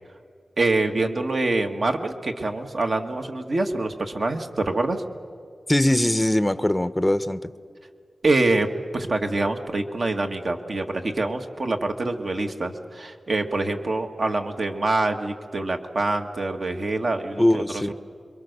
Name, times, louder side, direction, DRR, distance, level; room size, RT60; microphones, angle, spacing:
voice 1, 0.6-5.0 8.2-8.7 8.9-17.6 17.9-18.0, right 2 dB, 55° right, 5 dB, 1.7 m, -25 dB
voice 2, 5.7-7.5 17.4-17.9, left 1 dB, 10° left, 13 dB, 0.7 m, -21 dB
26.5 x 23.5 x 6.7 m, 2.2 s
wide cardioid pair, 110°, 0 cm